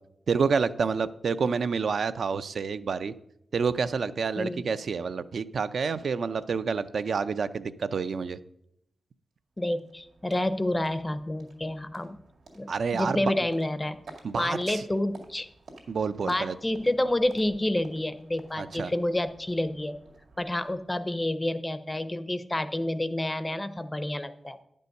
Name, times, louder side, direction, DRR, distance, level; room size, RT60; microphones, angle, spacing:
voice 1, 0.3-3.1 3.5-8.4 12.7-13.2 14.2-14.8 15.9-16.6 18.6-18.9, right 5 dB, 65° right, 12 dB, 0.4 m, -28 dB
sound 1, 9.3-21.7, right 3 dB, 80° right, 2.0 m, -52 dB
voice 2, 9.6-12.2 12.5-14.0 14.4-15.5 16.2-20.0 20.4-24.6, left 1 dB, 15° left, 12 dB, 0.5 m, -29 dB
9.8 x 5.3 x 6.4 m, 0.78 s
wide cardioid pair, 145°, 0 cm